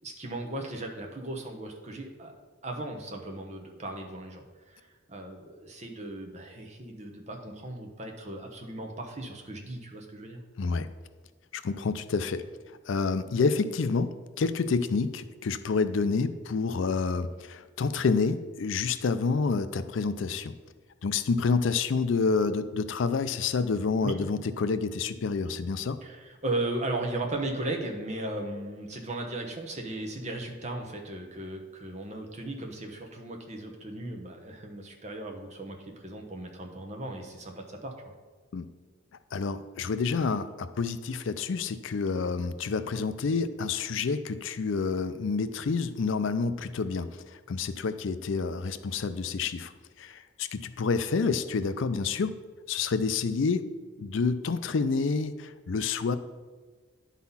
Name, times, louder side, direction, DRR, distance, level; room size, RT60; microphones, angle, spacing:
voice 1, 0.0-2.3 2.6-10.4 24.0-24.2 26.0-38.1, right 2 dB, 35° right, 2 dB, 1.0 m, -36 dB
voice 2, 10.6-10.9 11.5-20.5 21.0-26.0 38.5-38.7 39.3-49.7 50.0-52.4 52.7-53.7 54.0-56.2, left 4 dB, 75° left, 12 dB, 0.4 m, -28 dB
10.5 x 4.1 x 5.5 m, 1.4 s
head